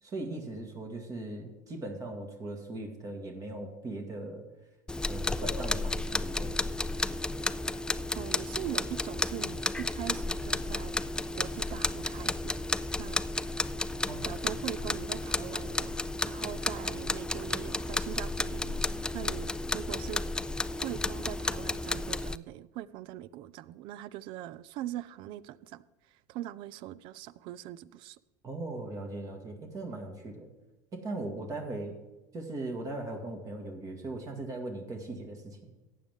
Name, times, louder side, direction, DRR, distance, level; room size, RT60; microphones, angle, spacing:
voice 1, 0.0-4.4 5.1-6.6 14.1-14.3 28.4-30.5 30.9-32.0 32.3-35.8, right 2 dB, 35° right, 3 dB, 1.9 m, -39 dB
sound 1, 4.9-22.4, left 2 dB, 10° left, 0.4 m, -32 dB
voice 2, 8.1-10.9 11.3-12.6 13.0-13.2 14.2-16.0 16.3-20.2 20.8-28.2, right 13 dB, 55° right, 19 dB, 0.5 m, -41 dB
14.5 x 9.3 x 3.6 m, 1.1 s
hypercardioid pair, 80°, 10 cm